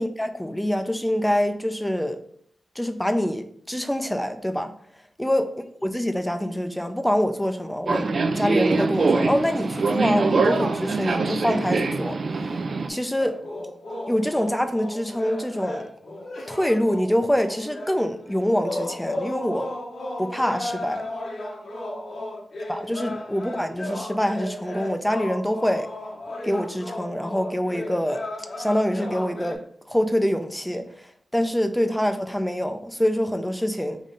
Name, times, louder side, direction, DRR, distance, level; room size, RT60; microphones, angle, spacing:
voice 1, 0.0-2.2 2.8-4.7 5.2-5.5 5.8-12.5 12.9-13.4 14.1-15.9 16.5-19.7 20.2-21.1 22.7-25.9 26.4-28.2 28.6-34.0, equal, 5° left, 0.4 m, -25 dB
Subway metro underground, 7.9-12.9, right 3 dB, 55° right, 0.4 m, -23 dB
sound 1, 13.2-29.5, left 1 dB, 65° left, 0.9 m, -35 dB
3.7 x 3.1 x 3.8 m
wide cardioid pair, 90°, 0 cm